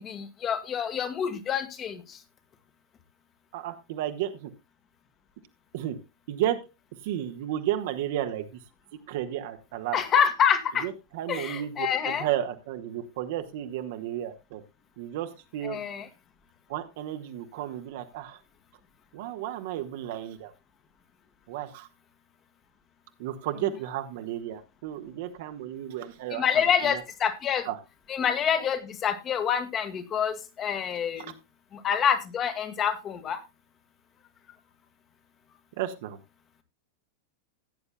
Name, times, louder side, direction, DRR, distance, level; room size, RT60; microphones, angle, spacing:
voice 1, 0.0-2.2 9.9-10.9 11.3-12.3 15.6-16.1 26.3-27.7 28.1-31.3 31.7-33.4, left 8 dB, 30° left, 9 dB, 1.8 m, -27 dB
voice 2, 3.5-4.5 5.7-6.0 6.3-6.6 7.0-8.6 9.1-10.0 10.8-14.6 15.0-15.8 16.7-18.4 19.1-20.5 21.5-21.9 23.2-27.0 27.6-27.8 31.2-31.3 35.8-36.2, right 12 dB, 50° right, 7 dB, 1.4 m, -33 dB
17.0 x 9.6 x 2.2 m, 0.26 s
figure-of-eight pair, 90°, 0 cm